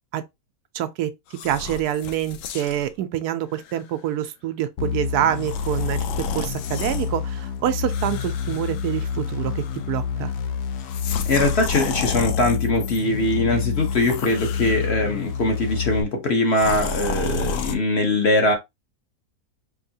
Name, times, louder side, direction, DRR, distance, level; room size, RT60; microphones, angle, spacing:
voice 1, 0.7-1.1 1.4-10.3, right 11 dB, 80° right, 1.1 m, -26 dB
sound 1, 1.3-2.9 3.5-3.8 5.4-7.1 7.9-9.3 9.6-10.0 10.8-13.0 13.8-15.2 16.5-17.8, left 4 dB, 70° left, 0.8 m, -32 dB
sound 2, 4.8-16.0, left 6 dB, 85° left, 1.2 m, -28 dB
voice 2, 11.3-18.5, left 2 dB, 45° left, 1.1 m, -22 dB
4.5 x 2.8 x 2.7 m
omnidirectional pair, 1.7 m